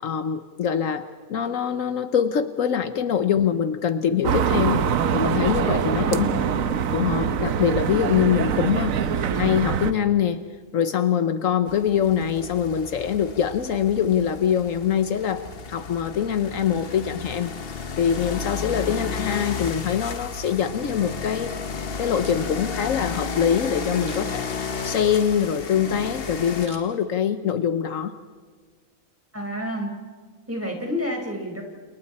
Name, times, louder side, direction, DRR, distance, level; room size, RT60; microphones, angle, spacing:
voice 1, 0.0-4.8 5.1-6.3 6.9-10.4 10.7-15.4 15.7-21.5 22.0-24.5 24.8-28.1, left 8 dB, 70° left, 10 dB, 1.3 m, -24 dB
sound 1, 4.2-9.9, right 7 dB, 75° right, 1.3 m, -24 dB
voice 2, 6.0-6.5 29.3-29.9 30.5-31.6, equal, 10° right, 1 dB, 4.8 m, -29 dB
sound 2, 11.7-26.7, left 5 dB, 45° left, 1.2 m, -33 dB
Camera, 22.2-22.8 23.9-24.5 26.5-27.5 27.9-28.0, right 2 dB, 50° right, 3.0 m, -47 dB
29.5 x 29.0 x 4.3 m, 1.5 s
omnidirectional pair, 1.4 m